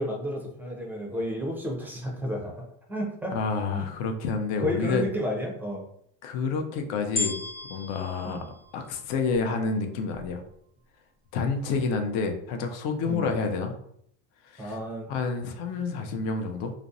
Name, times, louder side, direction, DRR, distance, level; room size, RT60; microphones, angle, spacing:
voice 1, 0.0-2.5 2.9-3.3 3.7-3.8 4.6-5.8 8.2-8.5 13.0-13.3 14.6-15.1, equal, 5° right, -1 dB, 0.3 m, -31 dB
voice 2, 3.3-5.1 6.2-7.4 7.7-8.4 8.7-10.4 11.3-13.7 14.4-14.8 15.1-16.7, left 4 dB, 65° left, 4 dB, 0.6 m, -29 dB
sound 1, 7.2-9.5 10.2-10.3, left 3 dB, 30° left, 0.7 m, -34 dB
2.4 x 2.0 x 2.5 m, 0.70 s
supercardioid pair, 110°, 45 cm